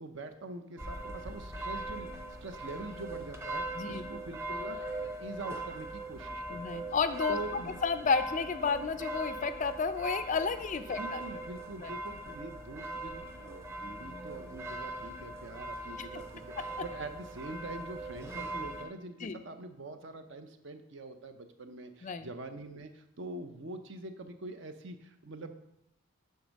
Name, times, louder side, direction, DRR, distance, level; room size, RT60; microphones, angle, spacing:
voice 1, 0.0-6.8 7.3-7.8 11.0-25.5, right 2 dB, 60° right, 8 dB, 0.7 m, -44 dB
sound 1, 0.8-18.8, right 1 dB, 15° right, 0.7 m, -40 dB
voice 2, 3.7-4.1 6.5-7.4 7.8-11.2 11.8-11.9 16.0-16.1 16.6-16.7 19.2-19.4 22.0-22.3, left 5 dB, 35° left, 11 dB, 0.3 m, -31 dB
8.2 x 3.5 x 6.3 m, 0.82 s
head